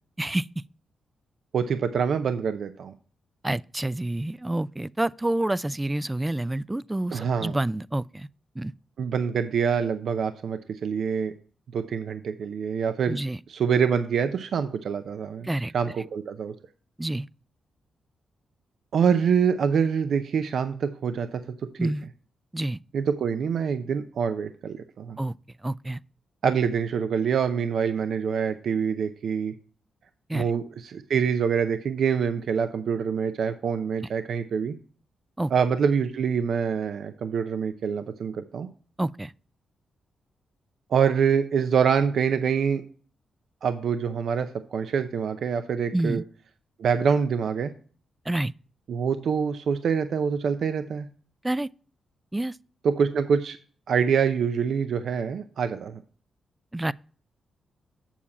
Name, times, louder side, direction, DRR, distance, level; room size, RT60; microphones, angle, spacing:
voice 1, 1.5-2.9 7.1-7.6 9.0-11.3 11.7-13.2 13.5-15.5 15.7-16.5 18.9-21.9 22.9-25.2 26.4-29.5 30.3-34.8 35.5-38.7 40.9-42.8 43.6-46.2 46.8-47.7 48.9-51.1 52.8-53.6 53.9-56.0, right 6 dB, 70° right, 0.6 m, -25 dB
voice 2, 3.4-8.3 8.6-8.7 13.1-13.4 15.4-15.7 17.0-17.3 21.8-22.1 22.5-22.8 25.2-25.4 25.6-26.0 30.3-30.5 35.4-35.5 39.0-39.3 45.9-46.2 48.3-48.5 51.4-51.7 52.3-52.6 56.7-56.9, right 1 dB, 15° right, 0.3 m, -28 dB
7.3 x 7.2 x 4.1 m
supercardioid pair, 50°, 0 cm